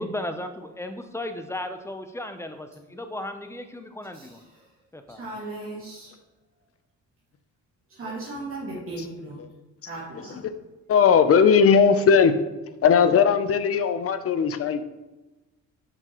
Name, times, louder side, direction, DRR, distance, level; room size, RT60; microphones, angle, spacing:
voice 1, 0.0-4.4 4.9-5.3, left 1 dB, 10° left, 8 dB, 0.6 m, -35 dB
voice 2, 4.1-4.7 5.1-6.1 7.9-9.4 9.8-10.4, right 2 dB, 45° right, -7 dB, 2.2 m, -37 dB
voice 3, 10.9-12.4 12.8-14.8, left 6 dB, 50° left, 11 dB, 0.6 m, -18 dB
6.8 x 6.0 x 3.0 m, 1.1 s
cardioid pair, 90°, 30 cm